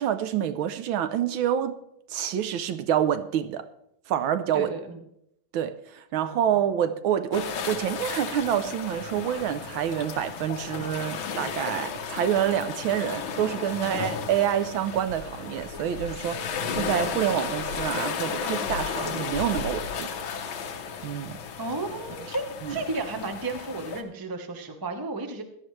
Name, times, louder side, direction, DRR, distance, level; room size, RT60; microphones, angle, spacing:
voice 1, 0.0-1.8 2.1-3.7 4.1-4.7 5.5-20.1 21.0-21.4 22.6-22.8, right 10 dB, 75° right, 1.4 m, -27 dB
voice 2, 4.5-5.0 13.8-14.1 21.6-25.4, right 2 dB, 20° right, 0.6 m, -33 dB
sound 1, 7.3-24.0, left 6 dB, 70° left, 1.9 m, -34 dB
16.5 x 11.5 x 3.2 m
omnidirectional pair, 2.4 m